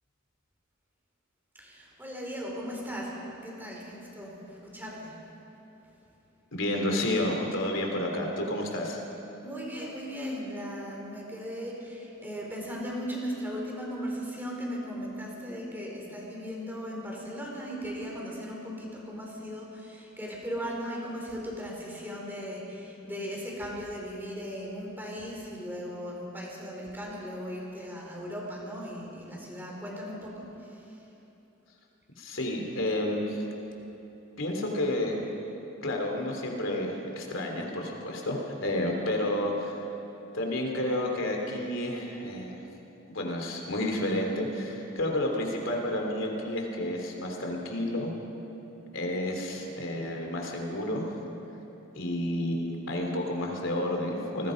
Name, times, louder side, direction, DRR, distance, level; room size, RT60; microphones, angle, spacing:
voice 1, 1.6-5.2 9.4-31.0, equal, 10° right, -2 dB, 4.6 m, -37 dB
voice 2, 6.5-9.0 32.1-33.4 34.4-35.2 35.8-39.8 40.3-42.6 43.1-48.1 48.9-51.1 51.9-54.5, left 1 dB, 65° left, 1 dB, 3.4 m, -30 dB
28.5 x 20.0 x 5.3 m, 3.0 s
head